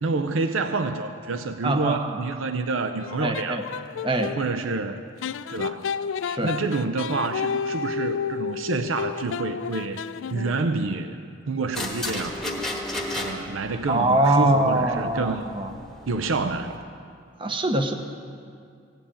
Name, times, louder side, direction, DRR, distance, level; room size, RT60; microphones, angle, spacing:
voice 1, 0.0-3.6 4.4-5.1 5.5-5.9 6.4-10.0 10.3-11.2 11.5-12.4 13.2-15.5 16.1-16.8, right 3 dB, 80° right, 8 dB, 0.6 m, -28 dB
voice 2, 1.6-2.1 3.2-3.6 4.0-4.4 6.2-6.5 13.9-15.7 17.4-17.9, right 1 dB, 25° right, 6 dB, 0.8 m, -23 dB
sound 1, 3.0-4.4 5.2-10.7, left 6 dB, 75° left, 0.3 m, -31 dB
sound 2, 11.7-16.8, left 1 dB, ahead, 1.2 m, -34 dB
16.5 x 7.8 x 8.8 m, 2.3 s
head